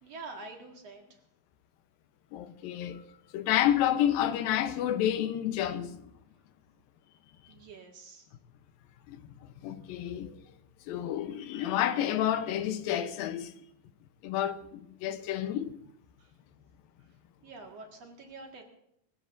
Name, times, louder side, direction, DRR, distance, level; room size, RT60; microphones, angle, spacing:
voice 1, 0.0-1.2 7.5-8.3 16.2-16.3 17.4-18.6, right 3 dB, 55° right, 2.7 m, -46 dB
voice 2, 2.3-3.0 3.3-6.1 9.1-10.4 10.9-13.5 14.2-15.7, left 11 dB, 90° left, 2.6 m, -30 dB
26.5 x 15.5 x 2.6 m
omnidirectional pair, 4.0 m